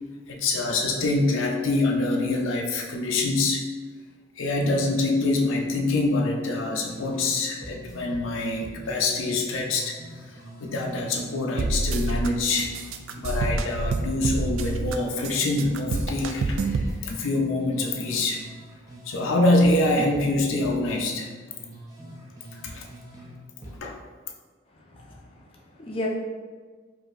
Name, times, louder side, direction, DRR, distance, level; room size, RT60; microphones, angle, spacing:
voice 1, 0.3-3.6 4.4-10.0 10.3-12.8 13.2-18.4 19.1-21.3 22.5-22.9 23.8-24.0, left 2 dB, 85° left, 1 dB, 0.6 m, -25 dB
sound 1, 6.9-7.4 7.6-11.4 11.6-15.4 15.6-19.4 19.6-23.4 23.6-23.8, right 1 dB, 20° right, 0.5 m, -44 dB
sound 2, 11.6-12.3 12.6-15.0 15.2-16.9, right 3 dB, 85° right, 0.3 m, -27 dB
voice 2, 24.7-26.1, left 1 dB, 30° left, -3 dB, 0.5 m, -36 dB
4.8 x 2.7 x 2.5 m, 1.5 s
head